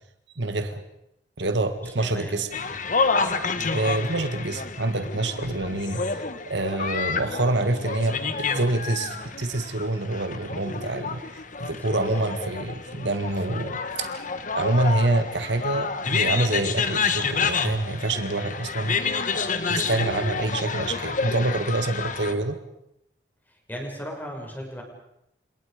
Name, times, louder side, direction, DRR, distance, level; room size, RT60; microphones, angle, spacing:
voice 1, 0.4-0.8 1.4-2.5 3.7-11.2 11.6-14.3 14.5-19.0 19.7-22.6, right 2 dB, 70° right, 8 dB, 1.8 m, -26 dB
voice 2, 1.8-2.8 3.6-3.8 11.7-12.3 20.4-20.6 23.7-24.8, equal, 10° left, 1 dB, 6.4 m, -37 dB
sound 1, 2.5-22.3, left 5 dB, 45° left, 1.6 m, -29 dB
30.0 x 27.5 x 5.1 m, 0.83 s
head